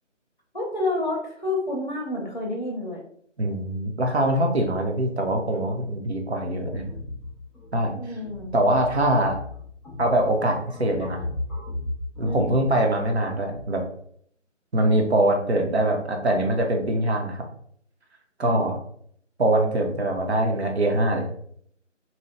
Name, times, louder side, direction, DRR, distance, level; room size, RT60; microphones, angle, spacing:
voice 1, 0.5-3.0 7.9-8.6 12.2-12.6 18.4-18.7, left 2 dB, 40° left, -1 dB, 0.6 m, -29 dB
voice 2, 3.4-7.0 7.7-7.9 8.5-9.4 10.0-11.2 12.2-13.8 14.7-17.4 18.4-18.8 19.4-21.2, right 1 dB, 60° right, 2 dB, 0.6 m, -23 dB
sound 1, 6.7-13.7, left 2 dB, ahead, 0.4 m, -37 dB
2.7 x 2.1 x 3.0 m, 0.64 s
figure-of-eight pair, 165°, 37 cm